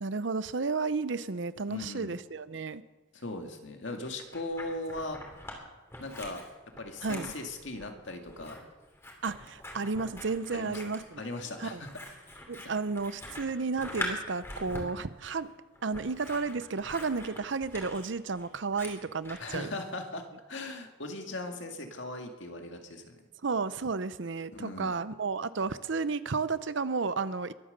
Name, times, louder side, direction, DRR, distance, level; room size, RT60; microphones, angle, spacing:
voice 1, 0.0-2.8 7.0-7.3 9.2-11.2 11.6-11.8 12.5-15.5 15.8-19.7 23.4-27.5, right 4 dB, 65° right, 15 dB, 0.7 m, -32 dB
voice 2, 1.7-2.1 3.1-5.2 6.0-6.5 6.8-8.6 10.5-10.8 11.2-11.9 19.4-23.2 24.5-25.0, left 2 dB, 65° left, 4 dB, 2.1 m, -39 dB
Scissors, 4.0-5.6 5.9-19.5, left 1 dB, 15° left, 2.9 m, -43 dB
22.5 x 9.0 x 6.8 m, 1.2 s
head